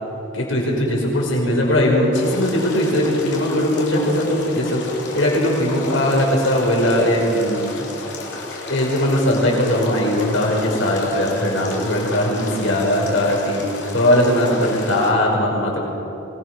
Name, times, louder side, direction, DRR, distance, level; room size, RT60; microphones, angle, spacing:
voice 1, 0.3-4.8 5.1-7.9 8.7-13.6 13.9-15.8, left 1 dB, 80° left, -2 dB, 5.7 m, -19 dB
sound 1, 2.1-15.1, left 2 dB, 60° left, 3.7 m, -33 dB
25.0 x 19.5 x 6.4 m, 2.9 s
head